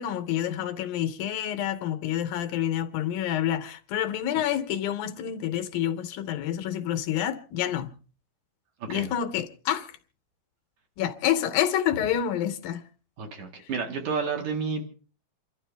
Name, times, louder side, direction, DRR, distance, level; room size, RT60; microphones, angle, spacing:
voice 1, 0.0-7.9 8.9-9.9 11.0-12.8, left 11 dB, 75° left, 2.5 m, -28 dB
voice 2, 13.2-14.9, right 5 dB, 55° right, 2.8 m, -31 dB
28.0 x 12.5 x 3.4 m
omnidirectional pair, 4.5 m